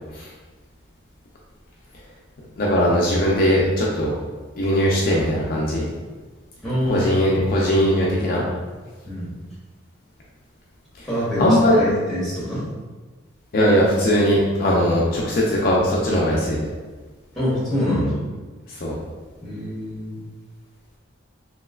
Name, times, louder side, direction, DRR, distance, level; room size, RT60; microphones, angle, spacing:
voice 1, 2.6-4.1 4.6-5.9 6.9-8.4 11.4-11.8 13.5-16.6 18.7-19.0, equal, 45° left, -4 dB, 0.4 m, -19 dB
voice 2, 6.6-7.1 9.0-9.3 11.1-11.4 11.8-12.7 17.3-18.2 19.4-20.2, equal, ahead, -9 dB, 1.0 m, -25 dB
3.1 x 2.8 x 2.3 m, 1.3 s
head